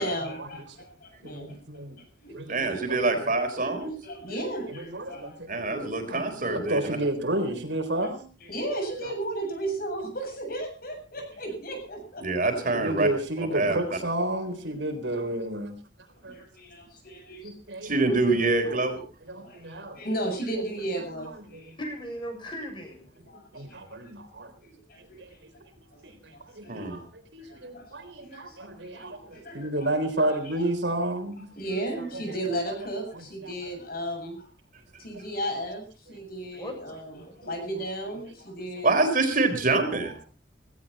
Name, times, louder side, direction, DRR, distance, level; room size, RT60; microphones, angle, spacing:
voice 1, 0.0-1.6 2.2-2.6 3.3-5.4 8.4-12.7 16.3-17.6 17.9-18.1 19.4-21.8 23.3-24.1 24.6-25.4 25.9-26.0 26.3-27.0 27.4-27.9 28.2-29.0 29.3-29.9 30.5-30.7 31.6-34.5 35.0-38.9, right 1 dB, 55° left, 4 dB, 7.7 m, -35 dB
voice 2, 1.2-2.0 2.3-3.7 4.7-8.3 9.0-9.1 12.7-15.8 16.2-16.4 17.4-18.3 18.6-18.8 19.2-20.0 20.8-21.7 23.5-24.5 25.0-25.5 26.0-31.5 31.7-31.8 32.1-32.2 33.1-33.5 37.4-37.8 39.7-40.1, right 1 dB, 75° right, 6 dB, 4.0 m, -32 dB
voice 3, 2.5-3.9 5.5-7.0 12.2-13.1 13.5-13.8 17.8-19.0 26.7-27.0 38.8-40.1, right 3 dB, 45° right, 6 dB, 4.2 m, -25 dB
voice 4, 21.8-23.1 36.6-37.4, equal, 25° left, 3 dB, 7.1 m, -38 dB
17.5 x 17.0 x 4.3 m, 0.38 s
head